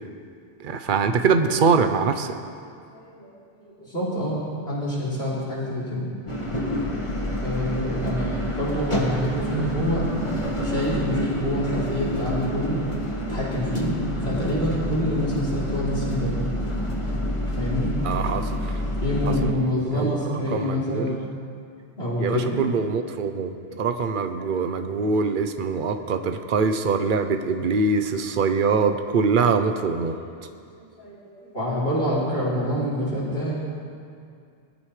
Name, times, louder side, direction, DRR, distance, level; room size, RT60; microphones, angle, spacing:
voice 1, 0.6-2.4 18.0-18.5 19.9-21.2 22.2-23.5 23.8-30.2, right 4 dB, 55° right, 7 dB, 0.9 m, -23 dB
voice 2, 2.6-3.3 3.8-6.1 7.4-12.8 13.3-13.9 14.3-16.3 17.6-17.9 19.0-21.2 22.0-22.6 23.7-24.0 24.4-24.5 25.0-25.1 26.0-26.1 30.3-33.6, equal, 70° left, -8 dB, 4.1 m, -27 dB
sound 1, 6.3-19.5, equal, 30° left, 1.6 m, -28 dB
20.0 x 13.5 x 3.3 m, 2.4 s
omnidirectional pair, 1.1 m